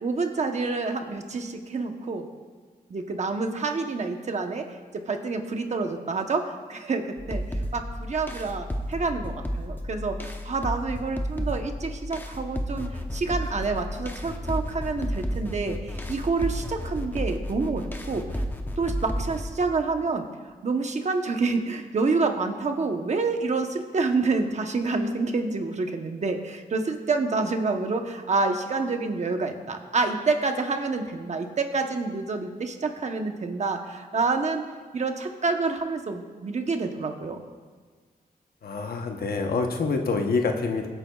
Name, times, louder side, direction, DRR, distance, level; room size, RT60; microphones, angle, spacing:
voice 1, 0.0-2.2 2.9-4.7 5.1-18.4 18.8-20.2 20.6-34.6 34.9-37.4, right 3 dB, 45° right, 5 dB, 0.9 m, -28 dB
sound 1, 7.2-19.5, equal, 15° left, 0.8 m, -32 dB
voice 2, 38.6-40.9, left 4 dB, 75° left, 3 dB, 1.0 m, -26 dB
22.5 x 9.1 x 2.4 m, 1.5 s
wide cardioid pair, 145°, 16 cm